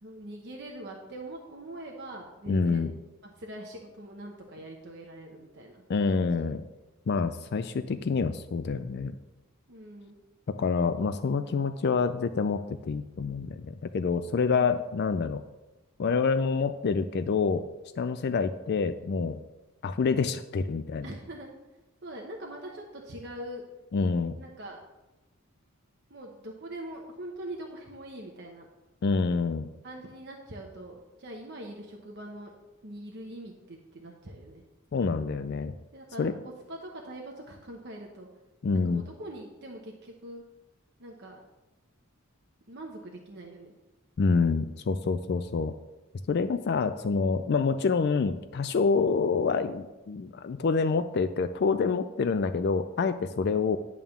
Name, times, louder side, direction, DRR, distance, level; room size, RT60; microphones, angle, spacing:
voice 1, 0.0-2.9 3.4-6.5 9.7-10.2 14.3-14.8 21.0-21.5 22.0-23.6 24.4-24.8 26.1-28.7 29.8-32.5 32.8-34.6 35.9-38.3 38.7-40.4 41.0-41.4 42.7-43.7, right 1 dB, 50° right, 0 dB, 1.0 m, -43 dB
voice 2, 2.5-2.9 5.9-6.6 7.1-9.1 10.5-15.4 16.0-17.7 18.0-19.4 19.8-21.0 23.9-24.4 29.0-29.7 34.9-35.7 36.2-36.3 38.6-39.0 44.2-45.7 46.3-53.8, left 4 dB, 50° left, 10 dB, 0.3 m, -27 dB
11.0 x 3.7 x 7.0 m, 1.1 s
head